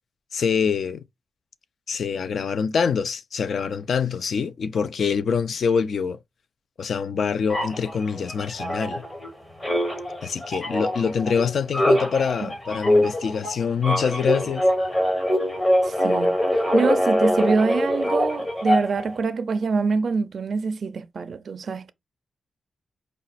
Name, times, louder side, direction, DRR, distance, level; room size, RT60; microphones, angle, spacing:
voice 1, 0.3-1.0 1.9-6.2 6.8-9.0 10.2-14.7, left 6 dB, 60° left, 0.3 m, -25 dB
sound 1, 7.5-9.3 9.6-19.1, equal, 20° left, 0.9 m, -23 dB
voice 2, 15.8-21.9, right 4 dB, 50° right, 0.4 m, -25 dB
4.9 x 2.2 x 4.0 m
wide cardioid pair, 150°, 0 cm